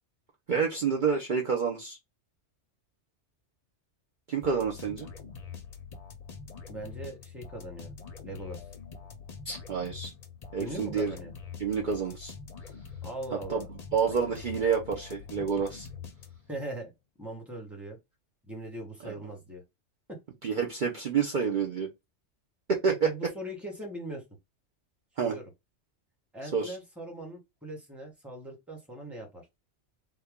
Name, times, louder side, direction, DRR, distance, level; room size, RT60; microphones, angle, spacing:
voice 1, 0.5-2.0 4.3-5.1 9.5-10.1 10.5-11.2 11.6-12.3 13.5-15.9 19.0-19.1 20.4-21.9 22.7-23.1 25.2-25.3 26.5-26.8, right 6 dB, 50° right, 0.7 m, -28 dB
sound 1, 4.4-16.6, left 6 dB, 45° left, 0.6 m, -45 dB
voice 2, 6.7-7.9 8.2-8.6 10.6-11.3 13.0-13.7 16.5-16.9 17.2-18.0 18.5-19.6 20.1-20.2 22.9-24.2 25.2-25.4 26.3-29.4, right 1 dB, ahead, 1.1 m, -40 dB
3.3 x 2.2 x 3.5 m
omnidirectional pair, 1.2 m